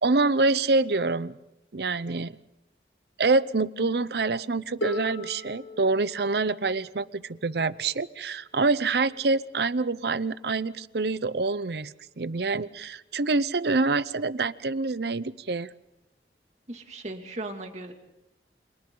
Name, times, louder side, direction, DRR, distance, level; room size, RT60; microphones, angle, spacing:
voice 1, 0.0-1.4 1.7-2.4 3.2-15.7, right 3 dB, 65° right, 16 dB, 0.7 m, -26 dB
Harp, 4.8-10.6 11.6-11.7, left 1 dB, 80° left, 4.2 m, -41 dB
voice 2, 16.7-17.9, right 2 dB, 40° right, 3 dB, 2.5 m, -37 dB
30.0 x 27.0 x 3.9 m, 0.90 s
head